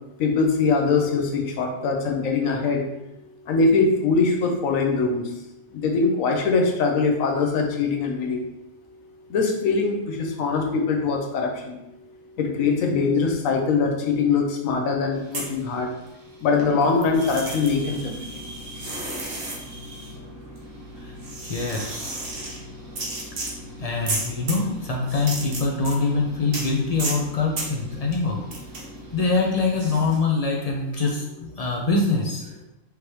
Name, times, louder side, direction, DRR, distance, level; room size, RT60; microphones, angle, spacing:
voice 1, 0.2-2.8 3.5-5.3 5.7-8.4 9.3-11.8 12.4-15.9 16.4-18.2 18.8-18.9, left 4 dB, 70° left, 2 dB, 1.1 m, -22 dB
sound 1, 15.2-16.3 16.6-30.2, right 2 dB, 45° right, 1.0 m, -35 dB
voice 2, 21.4-22.2 23.8-28.4 29.1-32.5, left 3 dB, 55° left, -2 dB, 0.4 m, -24 dB
5.1 x 3.1 x 3.1 m, 0.90 s
omnidirectional pair, 1.5 m